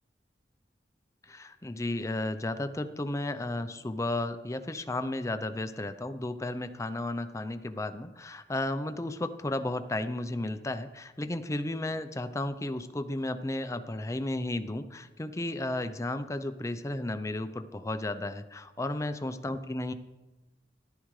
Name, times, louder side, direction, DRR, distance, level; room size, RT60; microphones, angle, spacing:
voice 1, 1.2-19.9, left 1 dB, 15° left, 10 dB, 0.5 m, -33 dB
13.5 x 11.5 x 3.2 m, 1.1 s
head